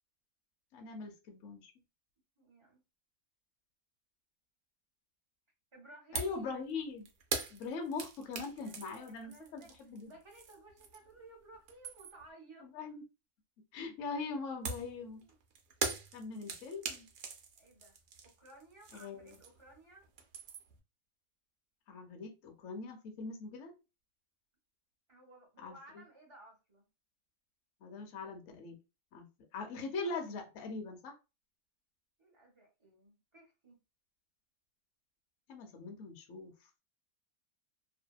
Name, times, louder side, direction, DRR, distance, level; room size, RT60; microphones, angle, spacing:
voice 1, 0.7-1.7 6.1-7.1 7.5-10.1 12.6-13.0 13.7-15.3 16.1-17.1 18.9-19.4 21.9-23.7 25.6-25.7 27.8-28.8 29.1-29.3 29.5-31.1 35.5-36.5, left 4 dB, 65° left, 0.8 m, -41 dB
voice 2, 2.4-2.8 5.7-6.7 8.5-9.7 10.0-12.7 15.2-15.3 17.6-18.0 18.2-20.0 25.1-26.9 32.2-33.8, right 2 dB, 30° right, 0.6 m, -57 dB
sound 1, 6.2-6.4 6.7-11.2 11.5-12.3 14.7-19.8 20.0-20.8, right 5 dB, 70° right, 0.9 m, -42 dB
2.6 x 2.1 x 2.2 m
omnidirectional pair, 1.6 m